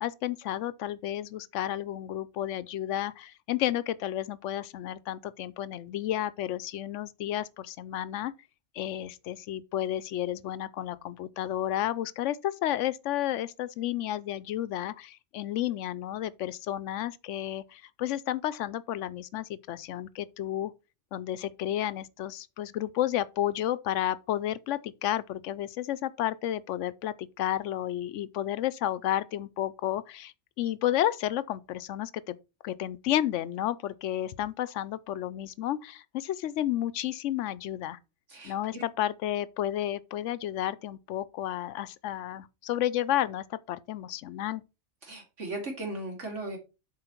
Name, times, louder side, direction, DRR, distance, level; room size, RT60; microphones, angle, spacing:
voice 1, 0.0-8.3 8.7-20.7 21.1-32.4 32.6-38.0 38.4-44.6, left 12 dB, 85° left, 0.9 m, -31 dB
voice 2, 38.3-38.9 45.0-46.6, right 2 dB, 85° right, 2.9 m, -37 dB
7.7 x 4.6 x 4.4 m
omnidirectional pair, 1.2 m